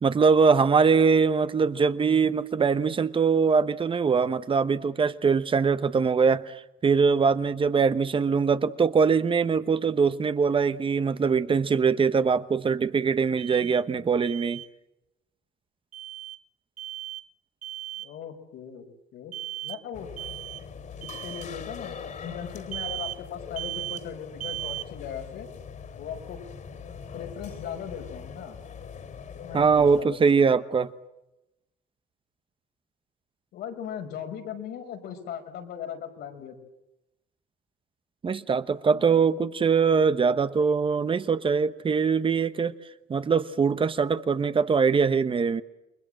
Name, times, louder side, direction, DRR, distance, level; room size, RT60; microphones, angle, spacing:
voice 1, 0.0-14.6 29.5-30.9 38.2-42.7 43.1-45.6, right 5 dB, 30° right, 1.1 m, -22 dB
Alarm, 13.4-13.8 14.2-14.7 15.9-16.4 16.8-17.3 17.6-18.1 19.3-19.8 20.2-20.6 21.0-21.4 22.7-23.2 23.6-24.0 24.4-24.9, right 14 dB, 50° right, 0.9 m, -36 dB
voice 2, 18.0-18.8 19.1-19.3 19.6-20.1 21.0-25.5 25.9-26.4 27.1-28.6 29.4-30.2 33.5-36.6 38.9-39.2, left 8 dB, 80° left, 5.3 m, -38 dB
sound 1, 19.9-30.0, left 6 dB, 50° left, 3.8 m, -42 dB
29.0 x 22.5 x 7.7 m
cardioid pair, 110°, 17 cm